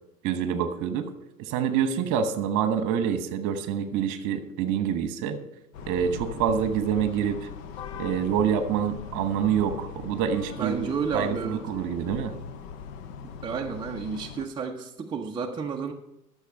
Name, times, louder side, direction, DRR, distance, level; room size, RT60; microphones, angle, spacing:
voice 1, 0.2-1.1 1.4-5.4 5.9-7.5 8.0-10.9 11.1-12.3, right 8 dB, 40° right, 9 dB, 1.3 m, -26 dB
sound 1, 5.7-14.5, left 6 dB, 50° left, 1.0 m, -40 dB
voice 2, 10.6-11.6 13.4-15.9, right 6 dB, 10° right, 1 dB, 0.6 m, -31 dB
12.0 x 7.1 x 5.4 m, 0.85 s
hypercardioid pair, 105°, 48 cm